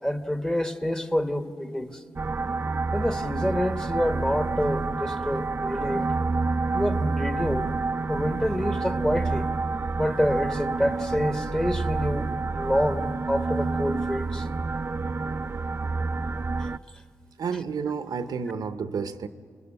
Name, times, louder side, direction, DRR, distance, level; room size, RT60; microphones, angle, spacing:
voice 1, 0.0-2.0 2.9-6.2 6.7-7.7 8.1-9.5 10.0-14.5 16.6-16.7, equal, 10° left, 8 dB, 1.3 m, -27 dB
sound 1, 2.2-16.8, right 3 dB, 35° right, 0.5 m, -28 dB
voice 2, 17.4-19.3, right 6 dB, 75° right, 11 dB, 0.8 m, -30 dB
28.0 x 20.5 x 6.6 m, 2.2 s
cardioid pair, 65°, 7 cm